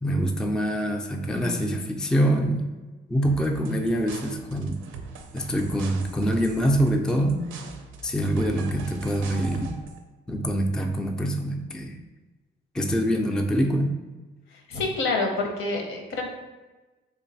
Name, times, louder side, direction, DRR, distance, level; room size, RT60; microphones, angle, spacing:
voice 1, 0.0-2.7 3.1-4.8 5.3-7.4 8.0-9.8 10.3-12.0 12.7-14.0, equal, 5° left, 3 dB, 0.3 m, -25 dB
sound 1, 3.2-10.0, right 4 dB, 85° right, 0.4 m, -41 dB
voice 2, 14.7-16.2, left 3 dB, 80° left, 1 dB, 0.8 m, -27 dB
3.2 x 2.2 x 4.0 m, 1.2 s
cardioid pair, 90°, 20 cm